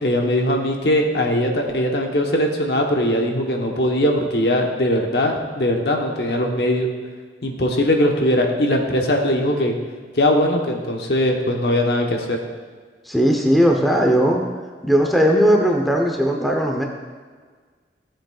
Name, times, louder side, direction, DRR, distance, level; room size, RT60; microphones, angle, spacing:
voice 1, 0.0-6.9 7.4-9.7 10.1-12.4, left 1 dB, 65° left, 2 dB, 1.1 m, -20 dB
voice 2, 13.1-14.4 14.8-16.9, equal, ahead, 0 dB, 0.8 m, -17 dB
15.0 x 7.7 x 2.4 m, 1.5 s
head